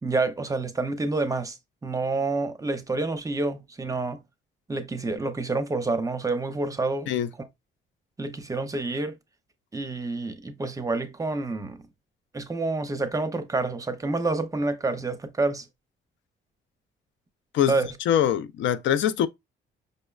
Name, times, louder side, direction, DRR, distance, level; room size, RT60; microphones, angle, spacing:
voice 1, 0.0-1.6 1.8-4.2 4.7-7.1 7.4-7.5 8.2-9.1 9.7-11.8 12.3-15.6 17.7-17.9, right 3 dB, 15° right, 0.5 m, -28 dB
voice 2, 18.1-19.3, left 10 dB, 70° left, 0.4 m, -23 dB
5.2 x 2.0 x 2.3 m
cardioid pair, 90°, 20 cm